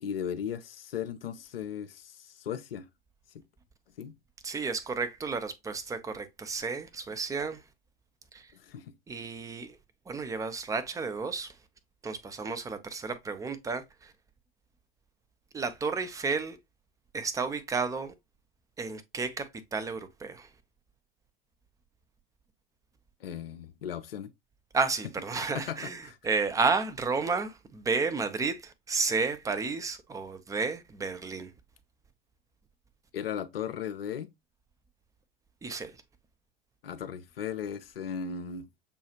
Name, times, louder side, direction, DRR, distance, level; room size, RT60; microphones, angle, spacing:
voice 1, 0.0-2.9 4.0-4.2 8.5-8.9 23.2-24.3 25.3-26.2 33.1-34.3 36.8-38.7, left 8 dB, 75° left, 0.5 m, -37 dB
voice 2, 4.4-7.6 8.3-8.5 9.1-9.8 10.1-11.5 12.0-14.1 15.5-16.6 17.1-18.1 18.8-20.5 24.7-31.5 35.6-35.9, right 4 dB, 10° right, 0.5 m, -32 dB
6.8 x 2.3 x 2.8 m
figure-of-eight pair, 75°, 30 cm